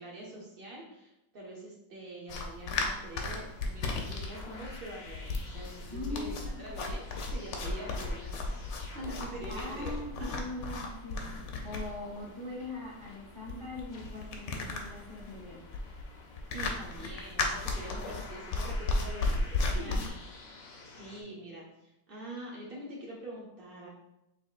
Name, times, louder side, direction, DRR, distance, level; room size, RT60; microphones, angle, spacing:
voice 1, 0.0-6.3 6.6-8.6 8.9-10.4 16.5-20.1 21.0-23.9, right 1 dB, 75° right, -4 dB, 0.5 m, -45 dB
sound 1, 2.3-20.1, left 3 dB, 80° left, 1.3 m, -35 dB
sound 2, 3.0-21.2, left 3 dB, 65° left, 0.9 m, -52 dB
voice 2, 5.9-6.6 9.5-11.2 11.6-15.6 17.9-18.1 19.7-20.1, left 2 dB, 20° right, -5 dB, 1.2 m, -41 dB
5.3 x 3.4 x 2.4 m, 0.90 s
omnidirectional pair, 2.0 m